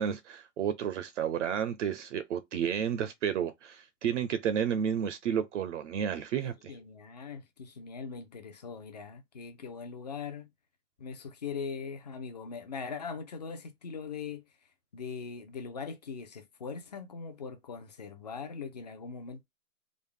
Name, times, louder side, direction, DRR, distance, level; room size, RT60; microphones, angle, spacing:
voice 1, 0.0-6.7, right 8 dB, 50° right, 0.6 m, -31 dB
voice 2, 6.4-10.5 11.0-14.4 14.9-19.4, left 5 dB, 30° left, 0.4 m, -41 dB
3.6 x 2.1 x 3.7 m
hypercardioid pair, 145°, 46 cm